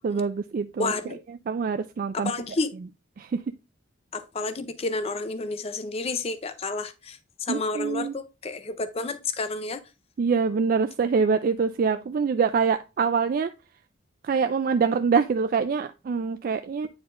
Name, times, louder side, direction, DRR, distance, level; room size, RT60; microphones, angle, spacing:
voice 1, 0.0-0.9 1.5-2.3 3.2-3.4 7.5-8.2 10.2-13.5 14.2-16.9, right 5 dB, 50° right, 0.3 m, -25 dB
voice 2, 0.8-1.2 2.1-2.7 4.1-9.8, left 3 dB, 35° left, 0.5 m, -30 dB
9.3 x 4.1 x 2.5 m
head